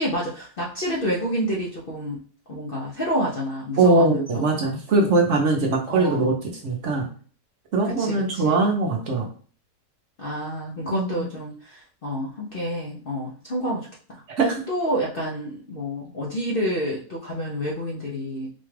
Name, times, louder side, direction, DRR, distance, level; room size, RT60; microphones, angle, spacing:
voice 1, 0.0-2.2 2.5-4.5 5.9-6.4 8.0-8.6 10.2-14.2 14.7-18.5, equal, 55° left, -3 dB, 0.6 m, -28 dB
voice 2, 3.8-7.1 7.7-9.3 10.9-11.3 14.3-14.6, right 3 dB, 55° right, 0 dB, 0.9 m, -21 dB
4.2 x 2.3 x 3.2 m, 0.42 s
omnidirectional pair, 1.7 m